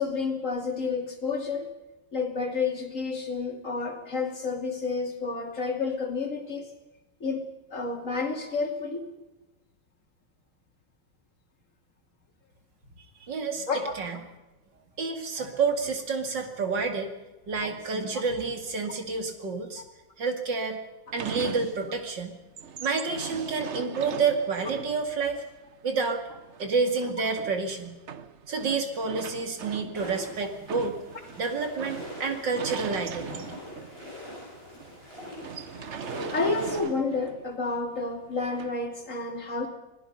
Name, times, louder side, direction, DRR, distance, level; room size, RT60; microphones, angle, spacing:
voice 1, 0.0-1.7 2.1-6.7 7.2-7.4 7.7-9.1 13.7-13.9 32.2-32.3 36.3-39.7, left 4 dB, 40° left, 3 dB, 3.1 m, -30 dB
voice 2, 13.2-13.7 14.0-14.2 15.0-17.1 17.5-19.8 20.2-20.8 21.1-22.3 22.8-25.4 25.8-26.2 26.6-28.0 28.5-31.0 31.4-33.6, right 4 dB, 70° right, 5 dB, 3.0 m, -29 dB
sound 1, 21.1-22.1 22.4-34.1 34.5-34.6 34.8-35.0 35.4-37.6 38.5-38.8, right 7 dB, 50° right, 1.0 m, -40 dB
sound 2, 29.9-36.8, left 1 dB, 30° right, 7.6 m, -43 dB
26.0 x 18.0 x 5.5 m, 1.1 s
omnidirectional pair, 2.0 m